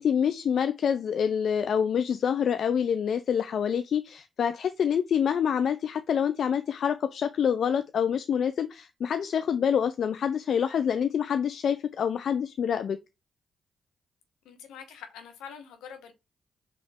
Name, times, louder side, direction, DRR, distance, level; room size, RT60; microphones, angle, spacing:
voice 1, 0.0-13.0, left 8 dB, 65° left, 0.3 m, -26 dB
voice 2, 14.4-16.1, left 7 dB, 80° left, 1.0 m, -45 dB
5.0 x 3.1 x 3.5 m
supercardioid pair, 50°, 0 cm